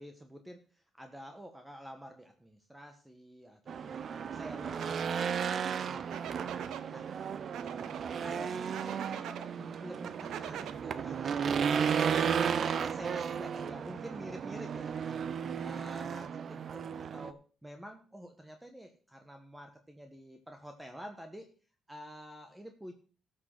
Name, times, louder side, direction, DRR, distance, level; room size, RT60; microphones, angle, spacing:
voice 1, 0.0-6.6 6.9-7.1 8.2-12.2 12.6-15.3 15.6-21.5 21.9-22.9, equal, 10° right, 5 dB, 1.5 m, -49 dB
Race car auto racing / Engine, 3.7-17.3, right 7 dB, 55° right, 0.7 m, -34 dB
sound 1, 4.8-4.9 6.1-6.8 7.5-8.0 8.7-9.5 10.0-10.7 11.9-12.7, right 10 dB, 80° right, 0.9 m, -43 dB
13.0 x 6.6 x 6.1 m, 0.38 s
cardioid pair, 90°, 0 cm